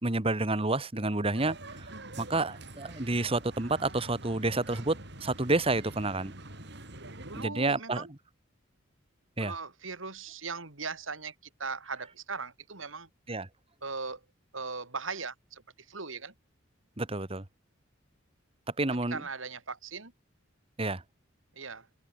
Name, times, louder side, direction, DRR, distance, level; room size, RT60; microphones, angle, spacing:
voice 1, 0.0-1.9 2.2-6.3 7.3-8.1 9.4-9.5 13.3-13.5 17.0-17.4 18.8-19.2 20.8-21.0, right 2 dB, 30° right, 1.6 m, -29 dB
sound 1, 1.3-7.4, right 2 dB, 60° right, 7.6 m, -45 dB
voice 2, 6.9-8.1 9.4-11.3 11.6-13.1 13.8-14.2 14.5-16.3 19.1-20.1 21.6-21.9, right 4 dB, 85° right, 4.0 m, -39 dB
head